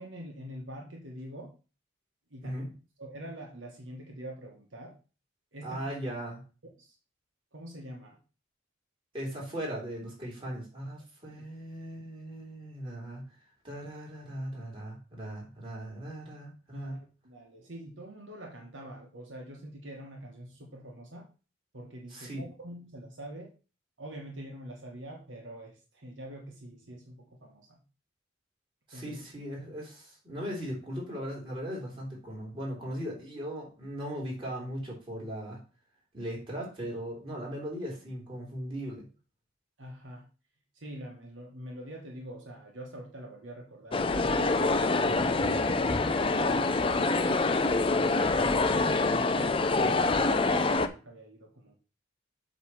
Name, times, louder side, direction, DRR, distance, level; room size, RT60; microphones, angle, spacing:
voice 1, 0.0-1.5 2.3-2.7 3.0-4.9 5.5-5.9 6.8-6.9 7.5-8.2 11.3-11.4 16.7-21.3 21.7-23.5 24.0-27.8 28.9-29.2 39.8-40.2 40.7-46.2 46.6-51.7, right 1 dB, 70° right, 0 dB, 1.4 m, -45 dB
voice 2, 5.6-6.4 9.1-13.2 13.6-17.0 22.1-22.5 28.9-35.6 36.1-39.1, equal, 25° right, -4 dB, 3.4 m, -38 dB
sound 1, 43.9-50.9, left 3 dB, 25° left, 0.5 m, -26 dB
8.0 x 3.2 x 6.2 m, 0.34 s
head